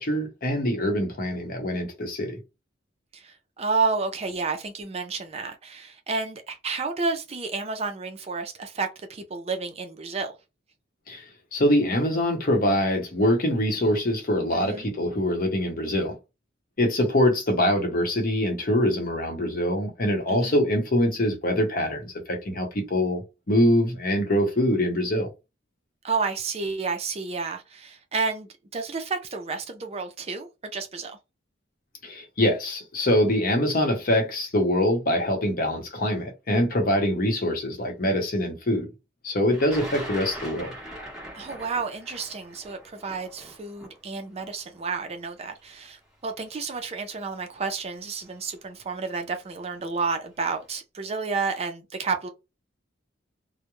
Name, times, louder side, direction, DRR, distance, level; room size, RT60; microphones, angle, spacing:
voice 1, 0.0-2.4 11.1-11.2 11.5-16.2 16.8-23.2 23.5-25.3 32.0-38.9 39.2-40.7, left 1 dB, 50° left, 0.8 m, -24 dB
voice 2, 3.1-10.3 14.5-14.9 20.3-20.6 26.0-31.2 41.3-52.3, right 4 dB, 35° right, 0.4 m, -31 dB
Thunder, 39.5-45.5 46.5-46.6 47.7-47.9 48.2-48.7, equal, 5° right, 1.0 m, -41 dB
2.3 x 2.1 x 3.0 m
head